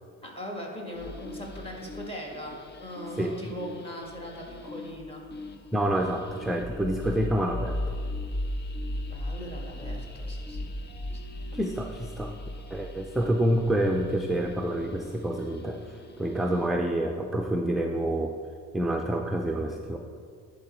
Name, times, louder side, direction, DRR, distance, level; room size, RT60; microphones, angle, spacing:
voice 1, 0.2-5.2 9.1-10.6 11.1-11.2, equal, 20° left, -1 dB, 1.6 m, -40 dB
sound 1, 0.9-16.9, left 1 dB, 35° left, 0.7 m, -38 dB
voice 2, 5.7-7.8 11.5-12.4 12.7-18.3 18.7-20.0, right 1 dB, ahead, 2 dB, 0.4 m, -28 dB
10.5 x 3.9 x 4.3 m, 2.1 s
cardioid pair, 90°, 30 cm